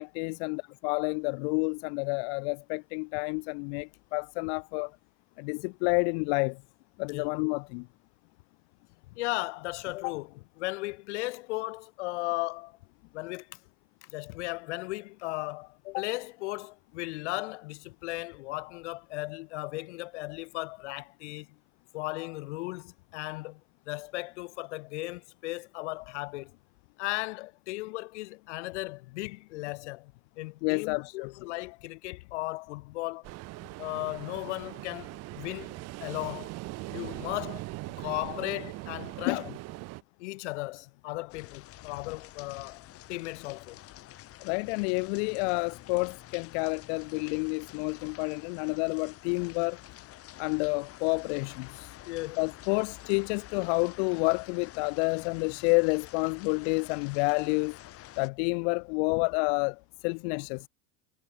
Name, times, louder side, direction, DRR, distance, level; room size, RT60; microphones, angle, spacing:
voice 1, 0.0-4.9 5.4-6.6 7.0-7.9 30.6-31.3 39.3-39.4 44.4-49.8 50.4-51.9 52.4-57.8 58.2-60.7, left 37 dB, 65° left, 0.5 m, -29 dB
voice 2, 9.1-12.8 13.1-13.6 14.0-21.5 21.9-23.6 23.9-26.5 27.0-33.3 33.8-36.5 36.9-37.6 38.0-39.5 40.2-43.8 52.1-52.4 59.1-59.2, left 21 dB, 90° left, 3.7 m, -36 dB
Ocean, 33.2-40.0, right 20 dB, 50° right, 1.6 m, -41 dB
sound 1, 41.3-58.3, left 14 dB, 40° left, 6.6 m, -49 dB
cardioid pair, 150°, 34 cm